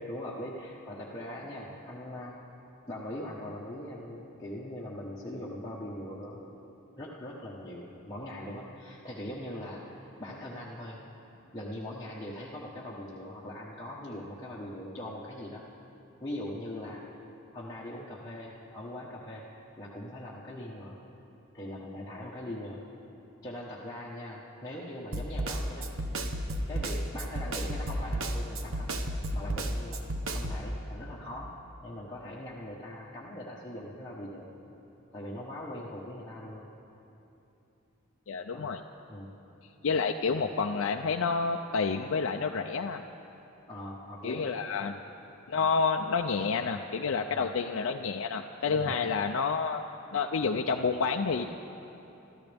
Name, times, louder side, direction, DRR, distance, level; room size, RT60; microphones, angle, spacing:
voice 1, 0.0-2.4 2.9-11.0 11.5-15.6 16.2-17.0 17.5-19.5 19.8-21.0 21.5-22.8 23.4-25.9 26.7-30.0 30.3-31.5 31.8-34.5 35.1-36.7 38.5-38.7 39.1-39.3 43.7-44.5 44.8-45.0 47.3-47.5 48.7-48.9, left 1 dB, 15° left, -7 dB, 1.2 m, -41 dB
Snare drum, 25.1-30.6, right 1 dB, 70° right, 1.0 m, -32 dB
voice 2, 38.3-38.8 39.8-43.0 44.2-44.9 45.5-49.8 50.1-51.5, left 5 dB, 65° left, 3 dB, 0.5 m, -29 dB
25.0 x 13.5 x 3.5 m, 3.0 s
head